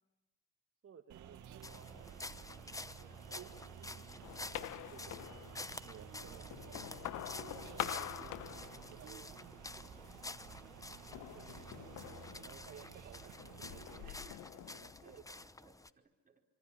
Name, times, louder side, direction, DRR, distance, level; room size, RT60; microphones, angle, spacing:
voice 1, 0.8-3.5 4.6-5.2 5.8-6.9 7.4-9.5 10.9-14.0 14.6-15.2, right 7 dB, 50° right, 5 dB, 2.0 m, -59 dB
sound 1, 1.1-14.1, right 9 dB, 80° right, 2.1 m, -53 dB
sound 2, 1.6-15.9, left 2 dB, 10° left, 0.9 m, -50 dB
sound 3, 4.2-5.9 6.3-9.3 9.7-10.3 11.1-13.0 13.4-15.4, left 13 dB, 85° left, 1.1 m, -46 dB
voice 2, 10.3-10.8 14.0-16.4, right 3 dB, 30° right, 1 dB, 4.7 m, -63 dB
26.5 x 25.0 x 8.9 m, 1.1 s
cardioid pair, 90°, 30 cm